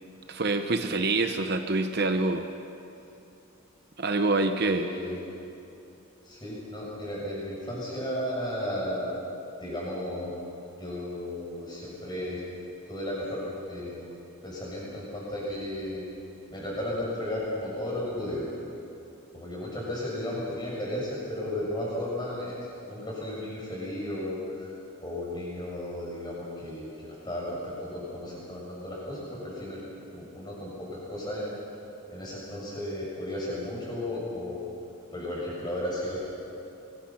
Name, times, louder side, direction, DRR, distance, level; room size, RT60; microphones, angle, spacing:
voice 1, 0.3-2.5 4.0-4.9, right 2 dB, 50° right, 7 dB, 0.8 m, -26 dB
voice 2, 4.6-5.2 6.2-9.1 9.6-10.3 10.6-12.4 12.9-14.0 14.4-16.0 16.5-18.5 19.3-22.6 22.9-24.7 25.0-29.8 30.1-31.5 32.1-34.6 35.1-36.2, left 1 dB, 20° left, -5 dB, 6.8 m, -34 dB
23.0 x 21.0 x 5.8 m, 2.8 s
head